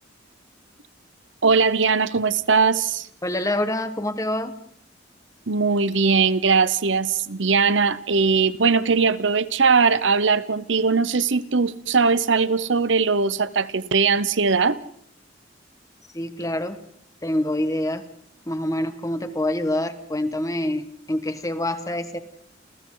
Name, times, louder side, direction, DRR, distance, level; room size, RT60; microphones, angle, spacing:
voice 1, 1.4-3.1 5.5-14.8, right 5 dB, 85° right, 0.9 m, -20 dB
voice 2, 3.2-4.5 16.1-16.8 17.2-18.0 18.5-22.2, left 1 dB, 20° left, 1.5 m, -26 dB
29.0 x 28.5 x 3.9 m
head